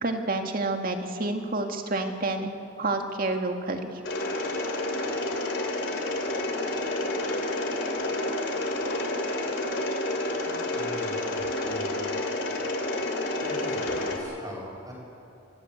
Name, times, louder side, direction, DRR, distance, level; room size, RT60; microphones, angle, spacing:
voice 1, 0.0-2.5 2.8-4.0, right 2 dB, 50° right, 4 dB, 2.1 m, -29 dB
Mechanisms, 4.0-14.2, left 2 dB, 75° left, 3.4 m, -29 dB
voice 2, 10.4-12.1 13.4-14.9, equal, 20° right, -2 dB, 7.5 m, -42 dB
28.0 x 16.0 x 8.4 m, 2.6 s
head